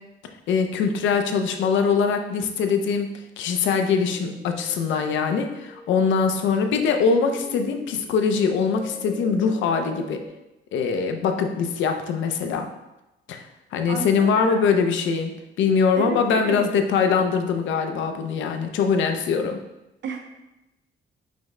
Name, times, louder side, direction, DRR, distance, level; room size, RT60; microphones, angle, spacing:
voice 1, 0.5-3.1 3.4-10.2 10.7-12.7 13.3-13.4 13.7-19.6, left 5 dB, 85° left, 6 dB, 0.5 m, -22 dB
sound 1, 4.1-10.3, left 1 dB, 10° left, 0.3 m, -41 dB
voice 2, 13.9-14.6 16.0-16.7 20.0-20.2, right 5 dB, 70° right, 4 dB, 0.6 m, -31 dB
5.0 x 2.1 x 3.6 m, 0.96 s
cardioid pair, 145°, 19 cm